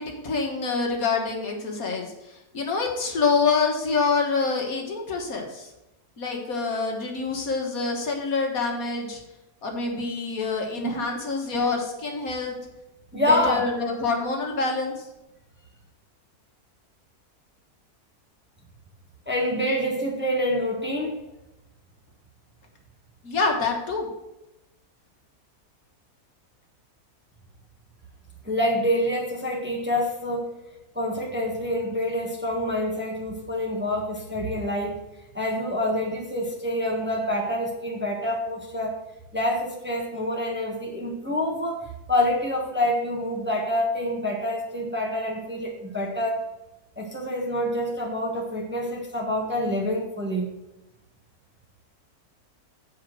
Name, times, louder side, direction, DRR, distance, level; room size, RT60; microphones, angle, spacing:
voice 1, 0.0-5.7 6.2-9.2 9.6-12.6 13.1-15.1 23.2-24.1, left 4 dB, 65° left, 1 dB, 1.8 m, -26 dB
voice 2, 10.8-11.1 13.1-13.6 19.3-21.2 28.4-30.5 30.9-35.0 35.3-39.0 39.3-46.4 47.0-50.5, left 1 dB, 10° right, -1 dB, 1.2 m, -27 dB
8.4 x 5.0 x 6.1 m, 0.95 s
omnidirectional pair, 1.6 m